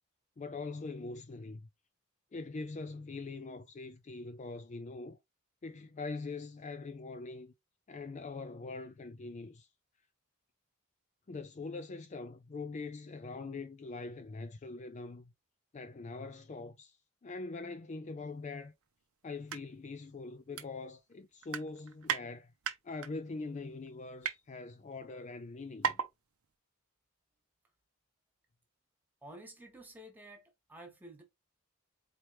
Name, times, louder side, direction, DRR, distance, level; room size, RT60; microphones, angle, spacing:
voice 1, 0.4-1.7 2.3-5.2 5.6-7.5 7.9-9.7 11.3-15.3 15.7-18.7 19.2-22.5 22.8-26.0, left 3 dB, 35° left, 0.4 m, -43 dB
sound 1, 19.3-19.6 20.0-20.1 20.6-21.1 21.4-22.2 22.6-23.1 23.7-24.4 25.1-25.2 25.4-25.5 25.8-26.1 26.4-26.5, right 7 dB, 85° right, 0.7 m, -35 dB
voice 2, 29.2-31.2, right 1 dB, 10° right, 1.4 m, -51 dB
4.3 x 3.3 x 3.0 m
head